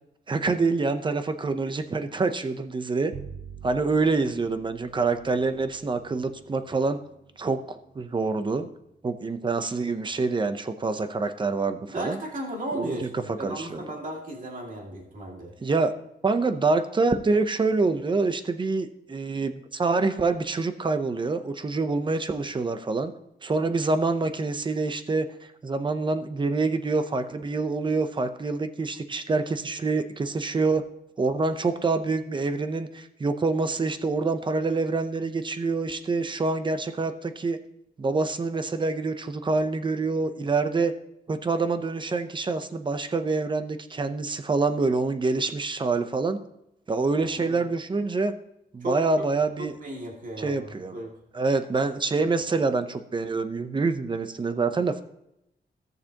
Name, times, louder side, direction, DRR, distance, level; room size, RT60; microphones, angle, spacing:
voice 1, 0.3-3.1 3.6-7.0 7.4-8.7 9.0-12.2 12.7-13.0 13.3-13.8 15.6-15.9 16.2-23.1 23.4-30.8 31.2-37.6 38.0-40.9 41.3-46.4 46.9-48.3 48.7-49.7 50.4-51.0 51.3-55.0, right 3 dB, 25° right, 9 dB, 0.6 m, -26 dB
Bowed string instrument, 3.1-9.6, right 7 dB, 65° right, 0.8 m, -47 dB
voice 2, 11.9-15.5 47.2-47.6 48.8-49.0 49.6-51.2, right 1 dB, 45° right, -1 dB, 2.2 m, -35 dB
16.5 x 6.7 x 2.9 m, 0.83 s
wide cardioid pair, 160°, 19 cm